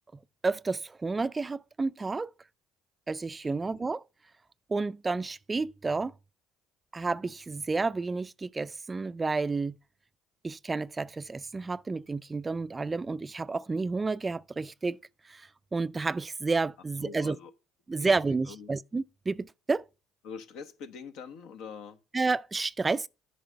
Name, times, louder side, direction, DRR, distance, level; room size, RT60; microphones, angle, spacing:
voice 1, 0.4-2.3 3.1-4.0 4.7-6.1 6.9-9.8 10.4-15.0 15.2-17.4 17.9-19.8 22.1-23.1, right 3 dB, 25° right, 0.3 m, -30 dB
voice 2, 3.4-3.8 17.0-17.5 18.0-18.7 20.2-22.0, left 6 dB, 70° left, 1.0 m, -44 dB
8.8 x 5.3 x 5.5 m
hypercardioid pair, 70°, 0 cm